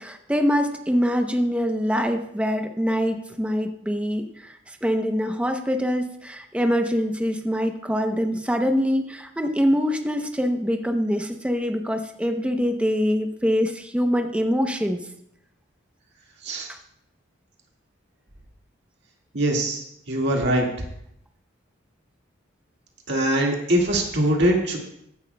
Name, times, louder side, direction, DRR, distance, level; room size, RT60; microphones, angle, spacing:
voice 1, 0.0-15.1 16.7-16.8, equal, 5° right, 5 dB, 0.6 m, -24 dB
voice 2, 19.3-20.7 23.1-24.8, right 1 dB, 55° right, 0 dB, 1.8 m, -22 dB
15.0 x 10.5 x 2.2 m, 0.74 s
head